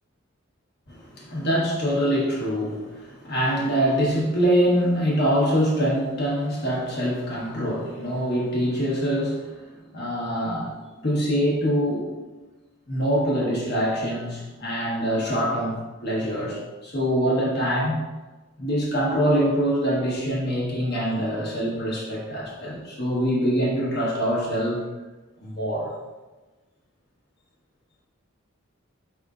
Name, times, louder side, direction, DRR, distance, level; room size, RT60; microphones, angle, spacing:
voice 1, 0.9-9.5 9.9-10.7 11.0-12.2 12.9-18.0 18.6-24.8 25.4-25.9, equal, 55° left, -5 dB, 1.2 m, -24 dB
4.7 x 3.5 x 2.5 m, 1.2 s
head